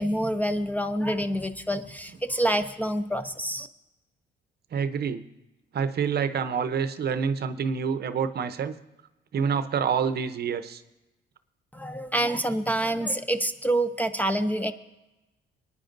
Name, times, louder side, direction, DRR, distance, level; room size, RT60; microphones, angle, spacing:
voice 1, 0.0-3.7 11.7-14.7, right 1 dB, 10° left, 10 dB, 0.5 m, -27 dB
voice 2, 4.7-5.2 5.7-8.7 9.3-10.8, right 6 dB, 55° right, 11 dB, 0.7 m, -27 dB
25.5 x 9.7 x 2.6 m, 0.99 s
cardioid pair, 90°, 20 cm